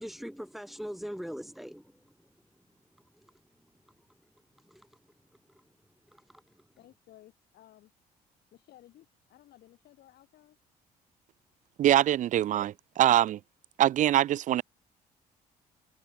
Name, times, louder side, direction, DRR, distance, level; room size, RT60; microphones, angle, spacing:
voice 1, 0.0-1.9 3.2-3.3 4.6-4.8 6.1-6.2, equal, ahead, 4.9 m, -40 dB
voice 2, 6.8-7.9 8.5-10.6, left 13 dB, 55° left, 4.9 m, -57 dB
voice 3, 11.8-13.4 13.8-14.6, right 12 dB, 40° right, 0.5 m, -23 dB
figure-of-eight pair, 50°, 20 cm